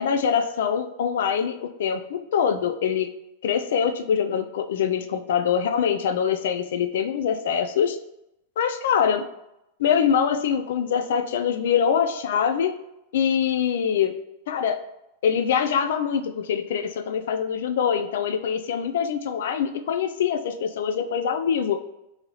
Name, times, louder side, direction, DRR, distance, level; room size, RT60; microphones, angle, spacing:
voice 1, 0.0-3.1 3.4-8.0 8.6-9.2 9.8-12.7 13.1-14.1 14.5-14.8 15.2-21.8, left 7 dB, 70° left, 7 dB, 0.3 m, -24 dB
2.9 x 2.8 x 3.8 m, 0.86 s
supercardioid pair, 165°, 0 cm